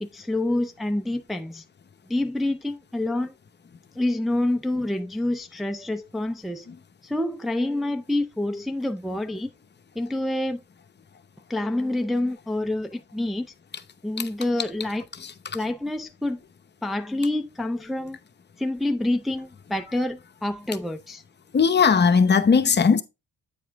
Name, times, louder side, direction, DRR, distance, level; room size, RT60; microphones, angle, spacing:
voice 1, 0.0-1.6 2.1-3.3 4.0-6.7 7.0-9.5 10.0-10.6 11.5-13.5 14.0-15.0 15.5-16.4 16.8-18.2 18.6-21.2, left 1 dB, ahead, 0.5 m, -27 dB
voice 2, 15.2-15.6 21.5-23.0, left 5 dB, 35° left, 0.8 m, -19 dB
8.6 x 4.8 x 3.5 m
cardioid pair, 90°, 30 cm